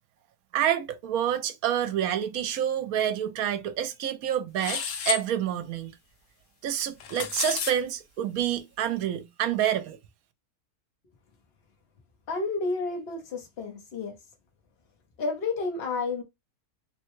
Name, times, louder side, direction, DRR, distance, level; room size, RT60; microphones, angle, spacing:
voice 1, 0.5-5.9 6.6-10.0, right 10 dB, 75° right, 1.0 m, -28 dB
sound 1, 4.6-5.2 6.8-7.7, left 7 dB, 75° left, 1.1 m, -31 dB
voice 2, 12.3-14.1 15.2-16.2, left 3 dB, 45° left, 1.1 m, -30 dB
3.3 x 2.2 x 3.0 m
omnidirectional pair, 1.6 m